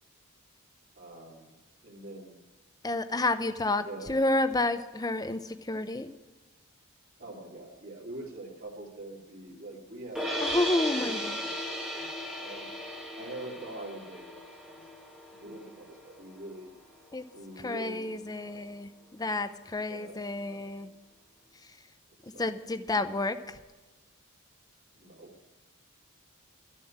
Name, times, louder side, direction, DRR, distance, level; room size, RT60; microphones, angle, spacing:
voice 1, 1.0-1.5 1.8-2.4 3.8-4.2 7.2-10.4 10.9-12.1 12.4-12.8 13.1-14.9 15.3-16.7 17.3-18.7 19.8-20.6 22.3-22.5 24.9-25.3, right 1 dB, 45° right, -8 dB, 2.8 m, -44 dB
voice 2, 2.8-6.1 10.4-11.4 17.1-17.2 17.6-20.9 22.4-23.6, left 2 dB, 20° left, 11 dB, 0.7 m, -30 dB
sound 1, 10.2-16.3, equal, 5° right, 1.7 m, -36 dB
13.5 x 7.3 x 8.8 m, 1.2 s
head